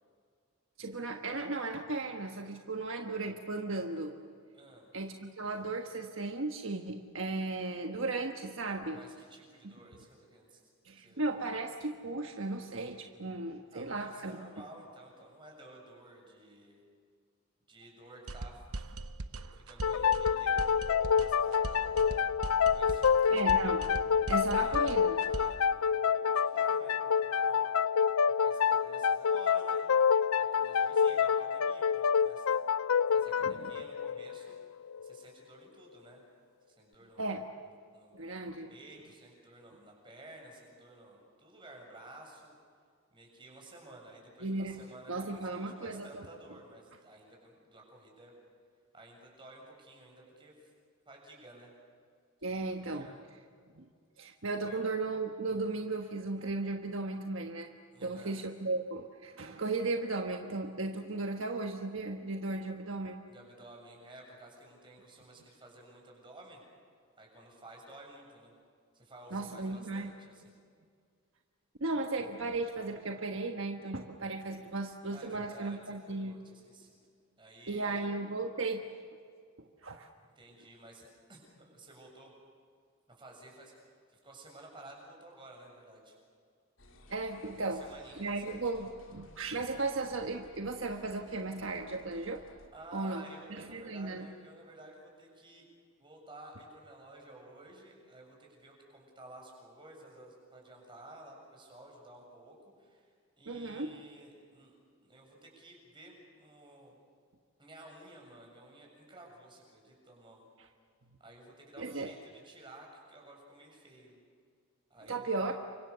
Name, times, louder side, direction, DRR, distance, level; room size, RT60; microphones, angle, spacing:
voice 1, 0.8-4.2 4.9-9.0 10.8-14.4 23.3-23.8 24.3-25.2 33.4-33.7 37.2-37.5 38.1-38.7 44.4-44.8 45.1-46.3 52.4-53.1 53.7-53.8 54.2-57.7 58.0-63.2 69.3-70.1 71.8-76.4 77.7-78.8 79.8-80.1 87.1-87.8 88.2-92.4 92.9-93.2 93.5-94.3 103.5-103.9 111.8-112.1 115.1-115.5, right 3 dB, 65° right, 4 dB, 1.4 m, -36 dB
voice 2, 4.5-4.9 8.9-10.6 11.0-11.5 13.7-16.8 17.7-18.9 19.3-22.3 22.6-23.4 24.5-27.7 28.4-29.8 30.4-32.6 33.1-34.6 35.0-36.2 36.7-37.4 37.9-38.4 38.7-42.5 43.1-48.3 48.9-50.7 51.1-51.7 52.6-53.2 54.6-54.8 57.9-58.4 63.3-66.6 67.2-68.5 68.9-70.5 75.1-77.0 77.4-78.1 80.4-82.3 83.2-86.2 87.6-88.9 89.7-89.9 92.7-95.6 96.0-104.8 105.0-106.9 107.6-110.5 111.2-114.2 114.9-115.5, right 1 dB, 25° right, 0 dB, 7.2 m, -53 dB
sound 1, 18.3-25.6, right 2 dB, 85° right, 1.0 m, -41 dB
sound 2, 19.8-35.2, left 7 dB, 85° left, 0.6 m, -28 dB
sound 3, 86.8-92.7, left 1 dB, 60° left, 3.2 m, -58 dB
30.0 x 25.0 x 6.9 m, 2.2 s
head